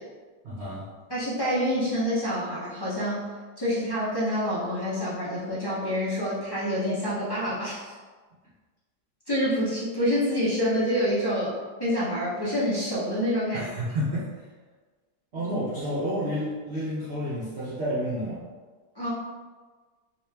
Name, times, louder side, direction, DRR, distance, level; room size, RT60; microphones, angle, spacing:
voice 1, 0.4-0.9 13.5-14.4 15.3-18.5, equal, 50° right, -9 dB, 0.8 m, -30 dB
voice 2, 1.1-3.2 3.6-7.9 9.3-11.5 11.8-13.7 19.0-19.1, equal, 35° left, -10 dB, 0.3 m, -27 dB
3.0 x 2.9 x 3.3 m, 1.4 s
omnidirectional pair, 1.9 m